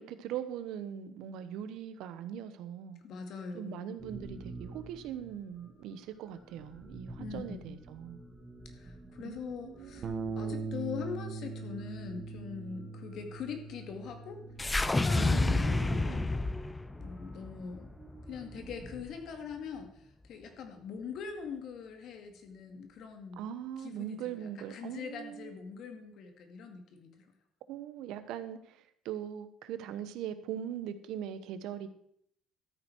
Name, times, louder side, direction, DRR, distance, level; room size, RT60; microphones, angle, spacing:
voice 1, 0.0-3.0 3.5-8.2 9.2-10.1 15.1-16.3 23.4-25.6 27.7-31.9, right 9 dB, 75° right, 11 dB, 1.0 m, -41 dB
voice 2, 3.0-3.9 7.2-7.8 8.7-10.1 10.4-14.4 14.8-16.4 17.0-17.9 18.3-23.5 23.8-27.3, left 6 dB, 55° left, 5 dB, 2.1 m, -43 dB
sound 1, 4.0-19.0, right 2 dB, 10° right, 1.8 m, -51 dB
Bass guitar, 10.0-16.3, right 4 dB, 45° right, 1.2 m, -41 dB
sound 2, 14.6-18.9, left 2 dB, 10° left, 0.3 m, -30 dB
13.0 x 9.0 x 4.6 m, 0.71 s
cardioid pair, 150°, 0 cm